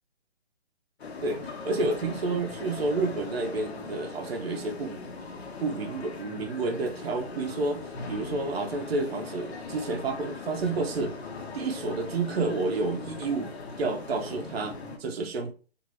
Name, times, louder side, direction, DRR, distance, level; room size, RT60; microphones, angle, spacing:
sound 1, 1.0-15.0, left 3 dB, 70° left, 0.9 m, -39 dB
voice 1, 1.2-5.0 5.6-11.1 11.5-13.5 13.8-15.5, right 3 dB, 65° right, 3 dB, 0.6 m, -30 dB
2.6 x 2.6 x 3.0 m, 0.38 s
figure-of-eight pair, 150°, 33 cm